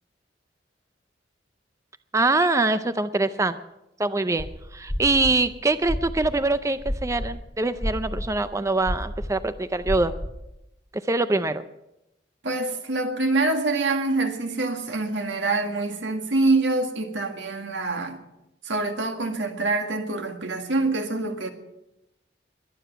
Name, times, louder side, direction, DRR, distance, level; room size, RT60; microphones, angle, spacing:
voice 1, 2.1-3.6 4.0-10.1 11.1-11.6, right 2 dB, 15° right, 0.5 m, -24 dB
sound 1, 4.4-4.5 4.8-7.3 7.6-8.4 8.8-10.3, equal, 25° left, 3.8 m, -30 dB
voice 2, 12.4-18.2 18.6-21.5, right 2 dB, 85° right, 1.9 m, -25 dB
22.0 x 9.5 x 5.8 m
head